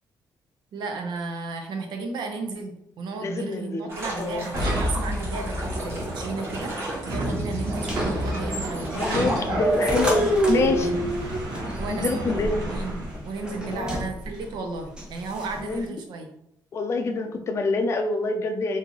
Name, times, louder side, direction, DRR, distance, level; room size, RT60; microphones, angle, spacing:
voice 1, 0.7-9.6 10.0-11.0 11.7-16.3, right 3 dB, 90° right, 4 dB, 0.7 m, -34 dB
voice 2, 3.2-3.9 4.2-4.4 8.9-10.9 11.9-12.7 13.7-14.0 15.6-16.0 16.7-18.8, left 3 dB, 40° left, 5 dB, 0.4 m, -26 dB
sound 1, 3.9-9.4, right 1 dB, 35° right, 1.2 m, -36 dB
sound 2, 4.5-13.3, right 1 dB, 70° right, 1.1 m, -27 dB
sound 3, 7.7-15.9, equal, 10° right, 0.7 m, -35 dB
2.9 x 2.7 x 3.8 m, 0.80 s
cardioid pair, 180°, 7 cm